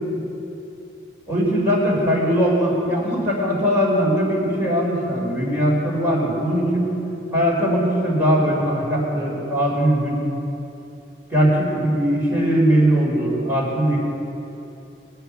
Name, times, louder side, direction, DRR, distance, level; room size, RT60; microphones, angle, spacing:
voice 1, 1.3-6.9 7.3-10.2 11.3-14.0, equal, 10° right, -5 dB, 4.1 m, -20 dB
21.5 x 8.0 x 7.1 m, 2.9 s
head